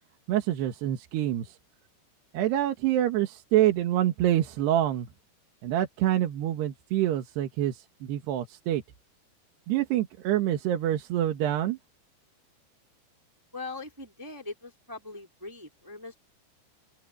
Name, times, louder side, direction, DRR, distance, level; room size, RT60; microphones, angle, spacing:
voice 1, 0.3-1.6 2.3-5.1 5.6-8.8 9.7-11.8, right 12 dB, 80° right, 3.7 m, -26 dB
voice 2, 13.5-16.2, left 3 dB, 5° right, 3.0 m, -41 dB
open air
omnidirectional pair, 4.7 m